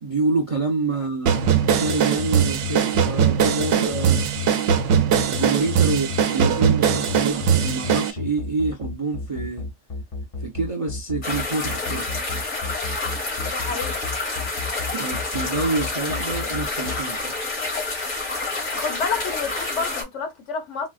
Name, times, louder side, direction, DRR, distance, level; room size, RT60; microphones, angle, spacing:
voice 1, 0.0-4.2 5.3-9.7 10.4-12.1 14.9-17.3, right 3 dB, 45° right, 0.4 m, -27 dB
sound 1, 1.3-8.1, right 8 dB, 70° right, 0.9 m, -21 dB
sound 2, 1.4-17.0, left 7 dB, 40° left, 0.5 m, -31 dB
sound 3, 11.2-20.0, left 3 dB, 85° left, 2.1 m, -28 dB
voice 2, 13.5-14.0 18.7-20.9, left 5 dB, 65° left, 1.1 m, -29 dB
4.1 x 2.0 x 2.4 m
omnidirectional pair, 1.4 m